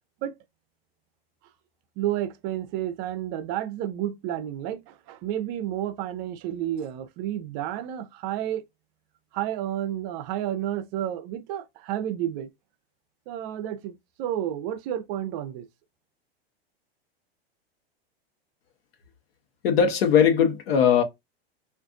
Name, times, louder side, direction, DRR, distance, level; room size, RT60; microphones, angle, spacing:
voice 1, 2.0-8.6 9.3-12.5 13.3-15.7, right 11 dB, 45° right, 0.5 m, -31 dB
voice 2, 19.6-21.0, left 7 dB, 70° left, 1.0 m, -19 dB
2.5 x 2.4 x 3.5 m
hypercardioid pair, 115°, 30 cm